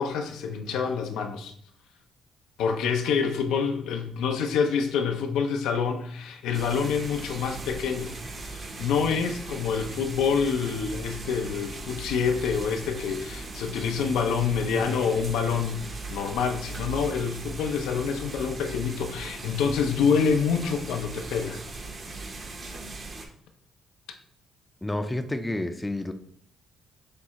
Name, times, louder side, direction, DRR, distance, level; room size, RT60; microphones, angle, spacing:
voice 1, 0.0-1.5 2.6-8.2 8.5-21.6, left 6 dB, 90° left, 5 dB, 0.5 m, -27 dB
sound 1, 6.5-23.2, right 3 dB, 45° right, 0.8 m, -39 dB
voice 2, 24.8-26.1, left 1 dB, 10° left, 9 dB, 0.4 m, -29 dB
6.4 x 2.4 x 2.9 m, 0.63 s
cardioid pair, 90°, 0 cm